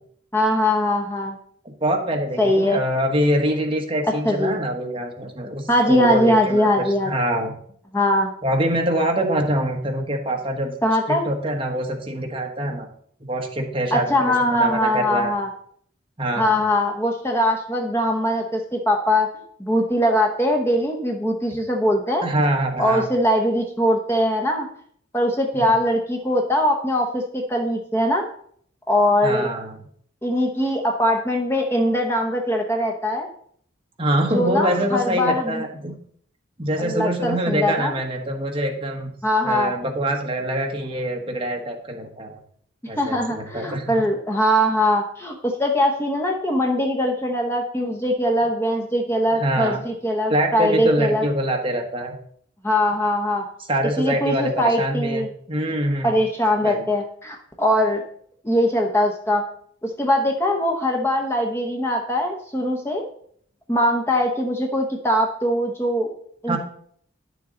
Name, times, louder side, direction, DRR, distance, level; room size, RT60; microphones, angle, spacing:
voice 1, 0.3-1.4 2.4-2.8 4.2-4.5 5.7-7.1 7.9-8.3 10.8-11.2 13.9-15.5 16.4-19.3 19.6-22.3 22.8-24.7 25.1-28.3 28.9-29.5 30.2-33.3 34.3-35.6 36.8-37.9 39.2-39.7 43.0-51.3 52.6-53.4 54.0-55.3 56.0-58.0 58.4-59.4 59.8-63.1 63.7-66.1 66.4-66.6, left 1 dB, 10° left, 1 dB, 0.9 m, -21 dB
voice 2, 1.8-6.7 7.0-7.5 8.4-10.7 11.1-12.9 13.3-15.3 16.2-16.6 22.2-23.1 25.5-25.6 29.2-29.8 34.0-35.9 36.6-39.1 39.4-42.4 42.9-43.9 49.4-49.8 50.3-52.1 53.7-56.1 56.6-56.8 66.5-66.6, right 1 dB, 25° right, 2 dB, 1.3 m, -24 dB
10.5 x 6.9 x 3.8 m, 0.63 s
head